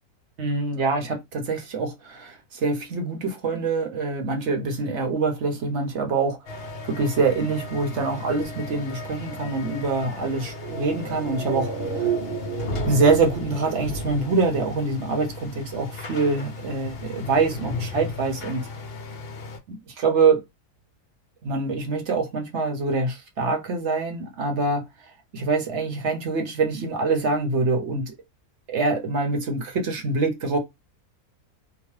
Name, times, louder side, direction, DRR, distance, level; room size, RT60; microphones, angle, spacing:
voice 1, 0.4-12.1 12.9-18.7 19.7-20.4 21.4-24.9 25.3-28.1 28.7-30.6, right 3 dB, 55° right, 1.0 m, -25 dB
sound 1, 6.5-19.6, left 3 dB, 55° left, 0.8 m, -36 dB
sound 2, 10.4-15.0 15.2-15.3, right 5 dB, 85° right, 1.4 m, -32 dB
2.9 x 2.0 x 3.1 m
omnidirectional pair, 1.6 m